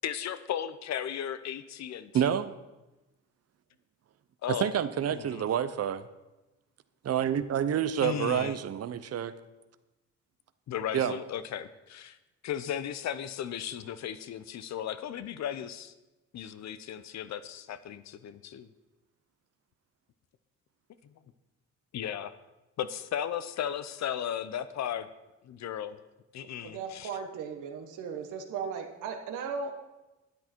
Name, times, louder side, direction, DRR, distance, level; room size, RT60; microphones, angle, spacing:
voice 1, 0.0-2.3 4.4-4.7 5.1-5.4 8.0-8.6 10.7-12.2 12.4-15.9 16.3-18.7 21.0-21.1 21.9-22.3 22.8-25.1 25.4-26.0 26.3-27.1, left 9 dB, 65° left, 0.8 m, -35 dB
voice 2, 2.1-2.5 4.5-6.1 7.0-9.3 10.9-11.2, right 9 dB, 55° right, 0.8 m, -28 dB
voice 3, 26.6-29.7, right 6 dB, 90° right, 1.5 m, -37 dB
12.5 x 9.6 x 4.5 m
cardioid pair, 90°, 30 cm